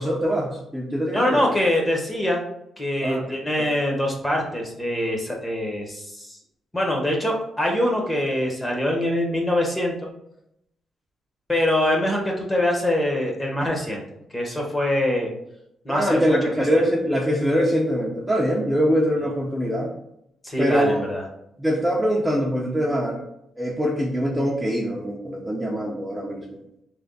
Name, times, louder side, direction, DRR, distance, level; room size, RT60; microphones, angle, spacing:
voice 1, 0.0-1.4 3.0-3.3 3.6-3.7 15.9-19.9 20.6-21.0 21.6-23.2 23.6-26.6, equal, 5° right, -4 dB, 0.6 m, -23 dB
voice 2, 1.1-2.4 2.8-6.4 6.7-10.1 11.5-14.0 14.3-15.3 15.8-16.5 20.4-21.2, left 1 dB, 15° left, 0 dB, 1.0 m, -24 dB
3.4 x 3.2 x 4.0 m, 0.79 s
cardioid pair, 125°, 0 cm